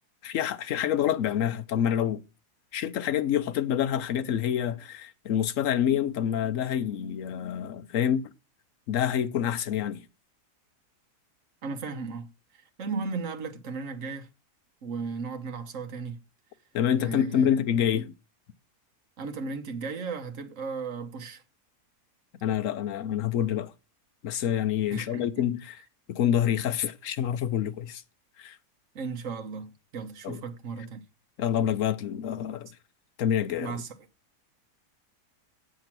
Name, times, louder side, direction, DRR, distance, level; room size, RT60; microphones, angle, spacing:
voice 1, 0.2-2.2 2.7-8.3 8.9-10.1 16.7-18.1 22.4-23.7 24.2-25.8 26.1-28.0 28.4-28.6 30.2-30.4 31.4-32.7 33.2-33.8, left 9 dB, 60° left, 1.1 m, -27 dB
voice 2, 11.6-14.3 14.8-16.2 17.0-17.5 19.2-21.4 24.9-25.3 28.9-31.0 33.6-33.9, right 4 dB, 55° right, 1.4 m, -35 dB
8.1 x 7.8 x 6.0 m
omnidirectional pair, 1.7 m